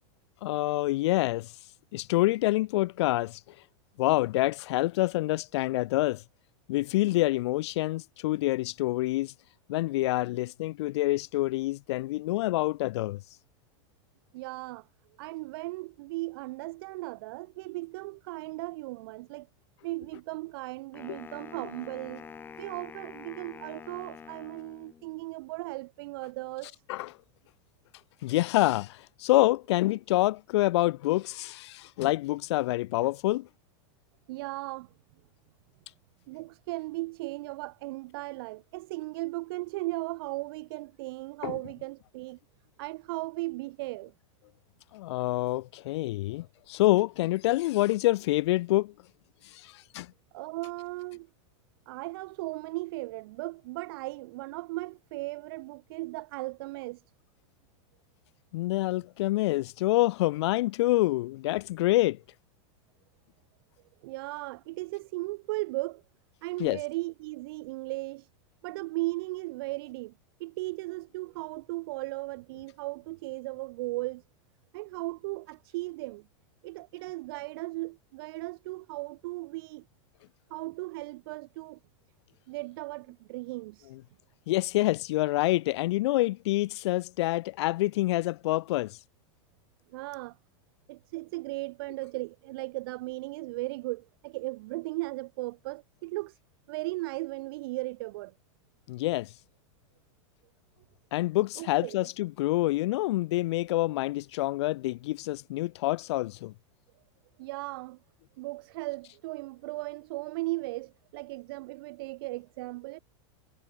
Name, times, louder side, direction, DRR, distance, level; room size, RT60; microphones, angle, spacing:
voice 1, 0.4-1.5 1.9-3.4 4.0-6.2 6.7-9.3 9.7-13.2 21.1-21.2 26.9-27.1 28.2-33.5 41.4-41.6 44.9-48.9 49.5-50.1 58.5-62.2 66.6-66.8 83.9-84.0 84.5-89.0 98.9-99.3 101.1-106.5, left 18 dB, 55° left, 0.4 m, -27 dB
voice 2, 14.3-14.8 15.2-19.5 19.8-22.3 22.6-26.7 34.3-34.9 36.3-42.4 42.8-44.1 50.3-51.3 51.9-57.0 64.0-66.0 66.4-68.2 68.6-70.1 70.4-74.2 74.7-76.3 76.6-79.8 80.5-81.8 82.5-83.8 89.9-90.4 90.9-96.3 96.7-98.3 101.6-102.1 107.4-108.0 108.4-113.0, right 21 dB, 45° right, 0.6 m, -37 dB
Wind instrument woodwind instrument, 20.9-25.2, left 6 dB, 10° left, 2.7 m, -46 dB
supercardioid pair, 175°, 17 cm